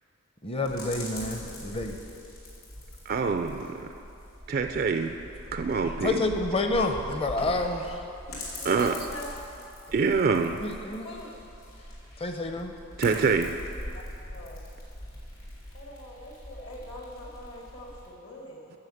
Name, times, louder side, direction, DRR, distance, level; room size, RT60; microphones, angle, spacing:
voice 1, 0.4-2.0 6.0-8.0 10.6-11.1 12.2-12.7, left 2 dB, 30° left, 5 dB, 0.7 m, -29 dB
sound 1, 0.6-18.1, left 1 dB, 90° left, 2.9 m, -42 dB
voice 2, 3.1-3.9 4.5-5.1 5.5-6.3 8.6-8.9 9.9-10.6 13.0-13.6, right 5 dB, 45° right, 6 dB, 0.4 m, -25 dB
voice 3, 8.6-9.3 11.0-11.3 13.9-14.1 14.3-14.6 15.7-18.7, left 1 dB, 65° left, -1 dB, 1.8 m, -43 dB
9.7 x 7.2 x 7.1 m, 2.8 s
head